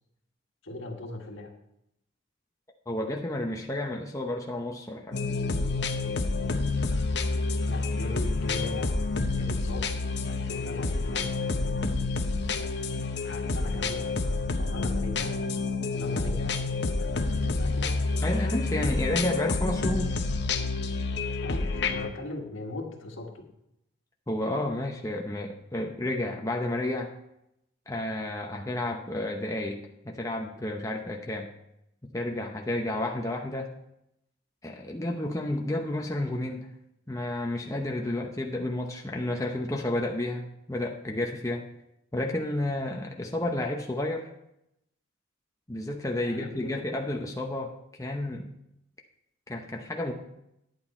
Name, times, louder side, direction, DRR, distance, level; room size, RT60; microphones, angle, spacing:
voice 1, 0.6-1.5 7.7-8.9 9.3-9.9 10.3-11.5 13.2-14.1 14.6-15.4 15.9-18.0 21.4-23.5 46.2-46.8, left 2 dB, 70° left, 2 dB, 1.6 m, -39 dB
voice 2, 2.9-5.2 18.2-20.2 24.3-27.1 27.9-31.5 32.0-33.7 34.6-36.7 37.1-41.6 42.1-44.3 45.7-48.5 49.5-50.1, left 1 dB, 15° left, 1 dB, 0.7 m, -31 dB
sound 1, 5.1-22.1, left 3 dB, 55° left, 0.8 m, -28 dB
10.5 x 8.6 x 4.3 m, 0.81 s
head